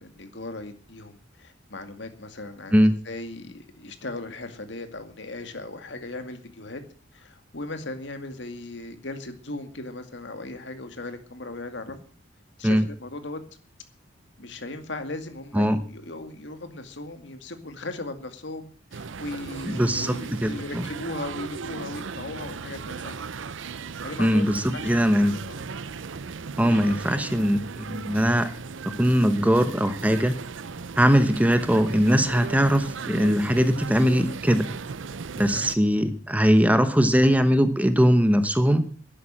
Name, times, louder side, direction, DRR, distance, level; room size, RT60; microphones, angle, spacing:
voice 1, 0.0-6.8 7.1-12.0 12.6-13.4 14.4-23.2 24.0-25.7 35.4-35.9, left 2 dB, 65° left, 8 dB, 2.2 m, -38 dB
sound 1, 18.9-35.8, right 5 dB, 80° right, 0.6 m, -37 dB
voice 2, 19.7-20.9 24.2-25.3 26.6-28.5 28.9-30.4 31.0-34.7 35.4-38.9, equal, 10° right, 10 dB, 1.0 m, -21 dB
11.5 x 11.0 x 7.6 m, 0.42 s
head